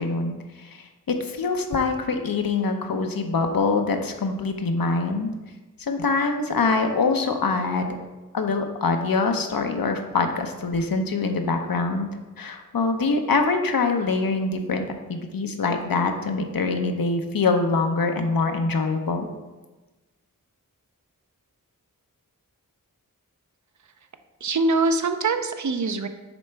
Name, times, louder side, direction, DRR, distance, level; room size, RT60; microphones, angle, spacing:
voice 1, 0.0-5.3 5.8-8.0 8.3-12.1 12.4-19.3, left 3 dB, 85° left, 5 dB, 0.7 m, -24 dB
voice 2, 24.4-26.1, right 3 dB, 60° right, 8 dB, 0.5 m, -23 dB
7.0 x 4.3 x 3.4 m, 1.2 s
wide cardioid pair, 65°, 34 cm